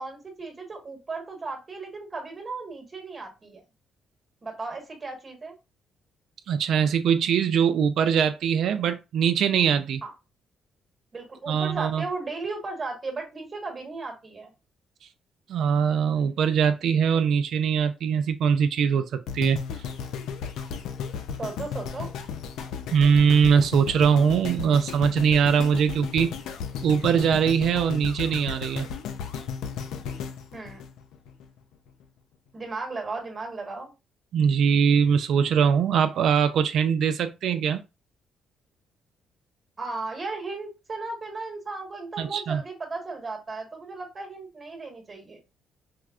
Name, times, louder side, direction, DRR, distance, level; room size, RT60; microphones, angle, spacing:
voice 1, 0.0-3.6 4.4-5.5 10.0-10.1 11.1-14.5 21.4-22.1 30.5-30.8 32.5-33.9 39.8-45.4, right 3 dB, 35° right, 1.3 m, -35 dB
voice 2, 6.5-10.0 11.5-12.0 15.5-19.6 22.9-26.3 26.8-28.9 34.3-37.8 42.2-42.6, right 7 dB, 70° right, 0.3 m, -22 dB
sound 1, 19.3-31.5 32.0-32.1, left 6 dB, 85° left, 0.4 m, -34 dB
4.6 x 2.0 x 2.4 m
cardioid pair, 90°, 0 cm